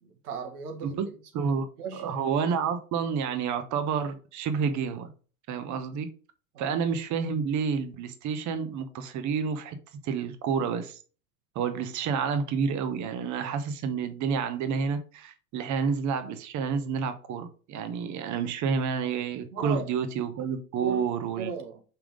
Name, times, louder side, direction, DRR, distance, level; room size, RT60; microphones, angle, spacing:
voice 1, 0.0-2.2 6.5-6.8 19.5-19.9 20.8-21.0 21.4-21.8, right 6 dB, 85° right, 1.8 m, -37 dB
voice 2, 1.3-1.7 1.9-5.1 5.5-6.1 6.6-9.8 10.0-11.0 11.5-21.5, right 6 dB, 40° right, 1.0 m, -29 dB
5.7 x 3.6 x 5.0 m
hypercardioid pair, 100°, 45 cm